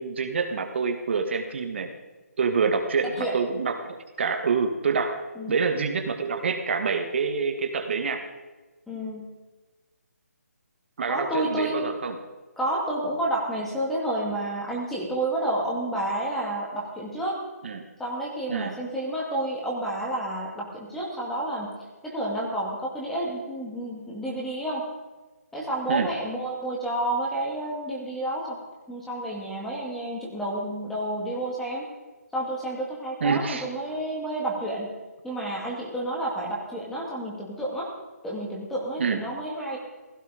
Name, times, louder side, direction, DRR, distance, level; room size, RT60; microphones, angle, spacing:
voice 1, 0.0-1.9 2.4-5.1 5.5-8.2 11.0-12.2 17.6-17.8 18.5-18.7 25.9-26.1 33.2-33.6 39.0-39.2, right 5 dB, 45° right, 6 dB, 1.5 m, -26 dB
voice 2, 8.9-9.3 11.1-11.8 12.6-17.4 18.0-21.7 22.0-24.9 25.5-28.6 28.9-31.9 32.3-34.9 35.2-37.9 38.2-39.8, right 1 dB, 5° left, -3 dB, 2.3 m, -30 dB
16.0 x 15.0 x 5.0 m, 1.2 s
hypercardioid pair, 165°, 9 cm